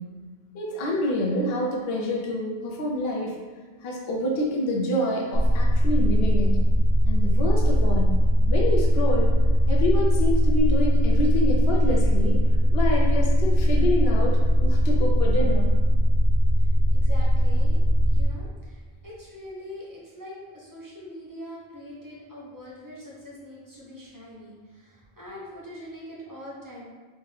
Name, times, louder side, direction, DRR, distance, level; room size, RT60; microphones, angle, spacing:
voice 1, 0.5-3.4 3.8-6.5 7.1-8.2 8.5-9.3 9.7-12.4 12.7-15.7, left 1 dB, 70° left, -1 dB, 0.8 m, -27 dB
sound 1, 5.3-18.3, equal, 90° left, 1.0 m, -20 dB
voice 2, 16.6-17.8 18.1-26.8, left 1 dB, 20° right, -7 dB, 0.8 m, -43 dB
3.3 x 2.9 x 3.2 m, 1.4 s
omnidirectional pair, 1.1 m